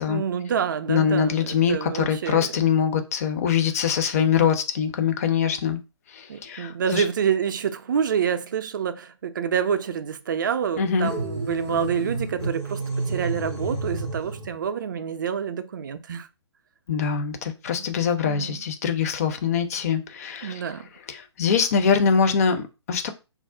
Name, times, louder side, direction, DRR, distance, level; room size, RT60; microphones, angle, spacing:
voice 1, 0.1-2.5 6.3-16.3 17.8-17.9 18.2-18.6 20.4-20.9, right 7 dB, 45° right, 0.4 m, -27 dB
voice 2, 0.9-5.8 6.1-7.0 10.8-11.1 16.9-20.6 21.1-23.1, left 7 dB, 30° left, 0.5 m, -23 dB
sound 1, 11.0-14.5, right 2 dB, 80° left, 1.3 m, -30 dB
2.4 x 2.0 x 3.7 m
figure-of-eight pair, 135°, 15 cm